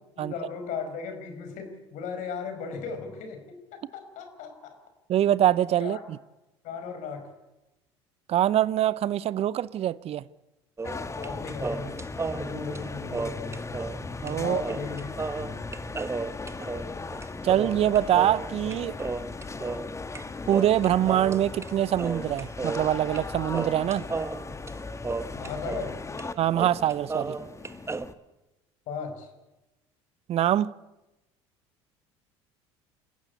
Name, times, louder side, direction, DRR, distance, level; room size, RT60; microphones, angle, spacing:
voice 1, 0.2-4.8 5.8-6.0 6.6-7.3 10.8-12.0 12.3-13.7 14.3-15.6 25.3-25.9 28.9-29.3, left 5 dB, 60° left, 5.4 m, -37 dB
voice 2, 5.1-6.2 8.3-10.2 14.2-14.6 17.4-19.0 20.5-24.1 26.4-27.4 30.3-30.7, right 11 dB, 45° right, 0.7 m, -24 dB
sound 1, 10.8-28.1, left 3 dB, 20° left, 1.7 m, -38 dB
sound 2, 10.8-11.3 11.6-14.0 14.3-14.4 14.6-20.2 20.5-21.7 22.0-23.3 23.5-25.9 26.2-26.3 26.5-28.1, right 4 dB, 20° right, 1.2 m, -34 dB
27.5 x 15.0 x 8.5 m
hypercardioid pair, 65°, 15 cm